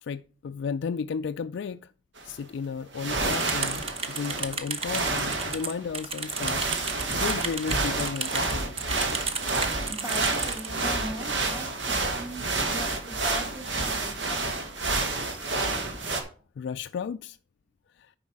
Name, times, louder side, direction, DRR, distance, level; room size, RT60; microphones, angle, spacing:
voice 1, 0.0-1.9 2.2-3.8 4.1-8.8 16.6-17.4, left 6 dB, 65° left, 0.3 m, -34 dB
sound 1, 2.2-2.3 2.9-16.2, right 3 dB, 65° right, 1.8 m, -29 dB
sound 2, 3.3-10.7, right 5 dB, 30° right, 1.1 m, -34 dB
voice 2, 9.9-15.6, right 1 dB, 10° right, 1.6 m, -41 dB
9.4 x 5.4 x 4.7 m
head